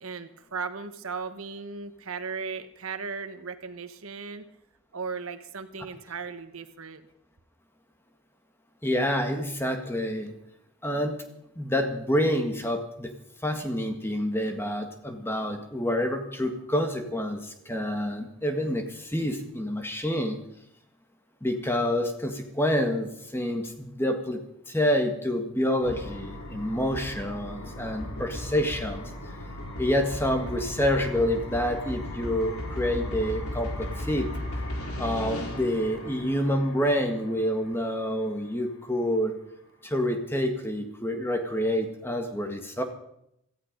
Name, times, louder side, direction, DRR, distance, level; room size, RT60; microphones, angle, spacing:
voice 1, 0.0-4.4 4.9-7.1, right 5 dB, 80° right, 10 dB, 1.2 m, -36 dB
voice 2, 8.8-10.3 10.8-11.2 11.6-13.1 13.4-20.4 21.4-24.4 24.7-29.0 29.8-34.3 35.0-39.3 39.8-42.8, equal, 10° left, 5 dB, 1.7 m, -28 dB
sound 1, 25.8-38.6, left 1 dB, 90° left, 4.2 m, -36 dB
17.0 x 14.5 x 5.3 m, 0.78 s
head